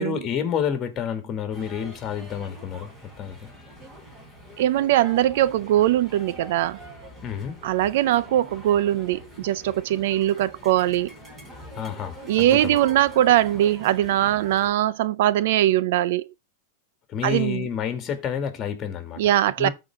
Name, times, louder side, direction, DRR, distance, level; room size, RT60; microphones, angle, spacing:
voice 1, 0.0-3.5 7.2-7.6 11.7-12.8 17.1-19.2 19.6-19.7, left 8 dB, 25° left, 2.2 m, -29 dB
sound 1, 1.5-14.7, equal, 10° right, 3.8 m, -44 dB
voice 2, 4.6-6.8 7.6-11.1 12.3-16.3 17.2-17.7 19.2-19.7, right 13 dB, 65° right, 0.5 m, -21 dB
13.5 x 4.5 x 3.7 m
supercardioid pair, 140°, 0 cm